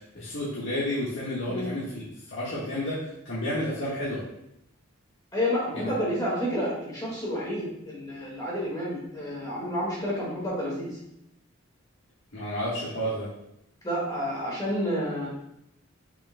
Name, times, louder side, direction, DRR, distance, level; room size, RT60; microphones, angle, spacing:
voice 1, 0.0-4.2 12.3-13.3, left 1 dB, 65° left, -8 dB, 1.5 m, -31 dB
voice 2, 5.3-11.0 13.8-15.3, equal, 20° left, -5 dB, 1.8 m, -30 dB
6.8 x 6.2 x 2.2 m, 0.80 s
head